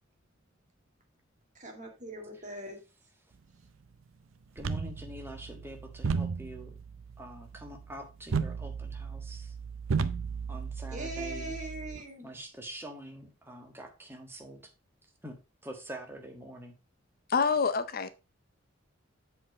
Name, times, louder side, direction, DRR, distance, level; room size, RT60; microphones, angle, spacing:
voice 1, 1.6-2.8 10.9-12.3, right 1 dB, 40° right, 2.2 m, -40 dB
voice 2, 4.5-6.8 7.2-9.5 10.5-11.5 12.2-14.7 15.2-16.7, equal, 10° right, 1.5 m, -45 dB
sound 1, 4.6-12.0, right 5 dB, 85° right, 0.6 m, -35 dB
voice 3, 17.3-18.1, left 5 dB, 50° left, 0.6 m, -26 dB
7.6 x 4.5 x 4.8 m
head